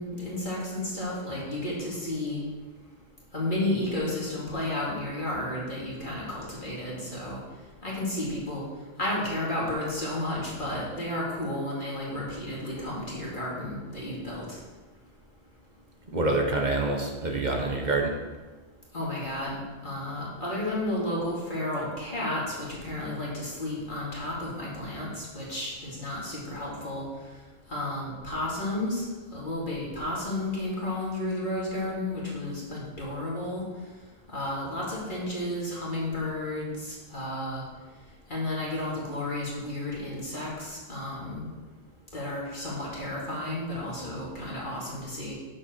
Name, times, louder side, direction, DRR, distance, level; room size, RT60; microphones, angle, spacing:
voice 1, 0.0-2.4 3.3-7.4 7.8-8.6 9.0-14.6 18.9-22.6 22.8-27.0 27.7-29.0 29.3-33.6 34.3-37.6 38.3-41.4 42.1-45.3, left 1 dB, 40° left, -6 dB, 2.9 m, -32 dB
voice 2, 16.1-18.1, right 2 dB, 35° right, 1 dB, 1.4 m, -26 dB
9.7 x 7.6 x 4.6 m, 1.3 s
omnidirectional pair, 1.3 m